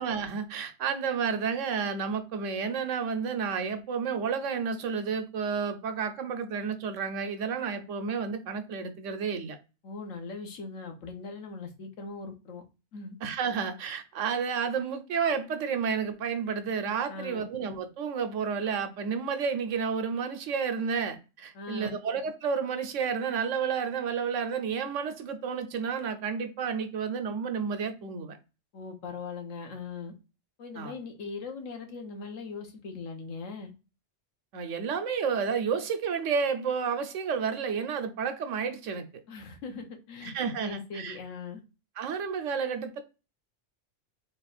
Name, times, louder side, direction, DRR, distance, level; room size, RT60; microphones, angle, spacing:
voice 1, 0.0-9.6 13.2-28.4 30.8-30.9 34.5-39.1 40.2-41.2 42.0-43.0, right 6 dB, 80° right, 1.1 m, -31 dB
voice 2, 9.8-12.6 12.9-13.2 17.1-17.5 21.5-22.0 28.7-30.1 30.6-33.7 39.3-41.6, left 4 dB, 85° left, 1.3 m, -40 dB
3.6 x 2.4 x 4.2 m
omnidirectional pair, 1.3 m